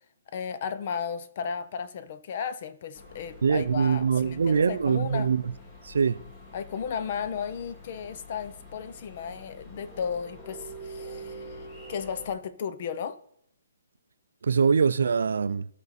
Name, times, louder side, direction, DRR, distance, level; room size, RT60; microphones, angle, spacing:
voice 1, 0.3-5.3 6.5-13.2, left 7 dB, 30° left, 0.6 m, -34 dB
sound 1, 2.9-12.3, equal, 15° left, 1.4 m, -46 dB
voice 2, 3.4-5.4 5.8-6.2 14.4-15.7, right 6 dB, 65° right, 0.4 m, -23 dB
13.0 x 5.3 x 4.1 m
hypercardioid pair, 175°, 0 cm